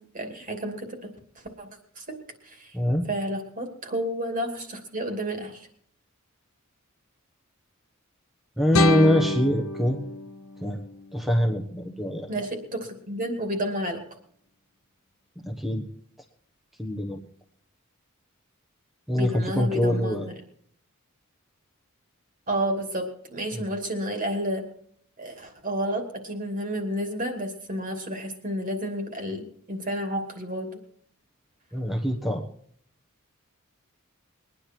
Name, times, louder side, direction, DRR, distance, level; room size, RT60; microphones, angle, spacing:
voice 1, 0.1-1.1 1.6-1.7 2.0-2.1 2.4-2.8 3.1-5.7 12.3-14.0 19.2-20.3 22.5-24.6 25.2-30.8, equal, 40° right, 4 dB, 2.6 m, -31 dB
voice 2, 2.7-3.1 8.6-10.0 10.6-10.8 11.1-12.3 15.4-15.8 16.8-17.2 19.1-20.3 23.5-23.6 31.7-32.4, left 1 dB, ahead, 1 dB, 1.2 m, -24 dB
sound 1, 8.7-11.7, left 2 dB, 75° left, 1.1 m, -28 dB
21.5 x 10.0 x 4.6 m, 0.64 s
head